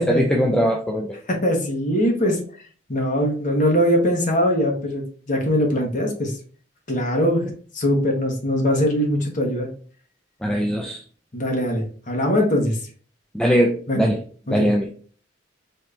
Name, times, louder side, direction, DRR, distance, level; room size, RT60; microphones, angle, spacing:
voice 1, 0.0-1.2 10.4-11.0 13.3-14.2 14.5-14.9, equal, 5° left, 0 dB, 0.4 m, -21 dB
voice 2, 1.3-2.4 2.9-6.3 6.9-7.4 7.7-9.7 11.3-12.8 13.9-14.1 14.5-14.7, equal, 40° left, 0 dB, 1.1 m, -21 dB
4.2 x 3.2 x 2.5 m, 0.43 s
head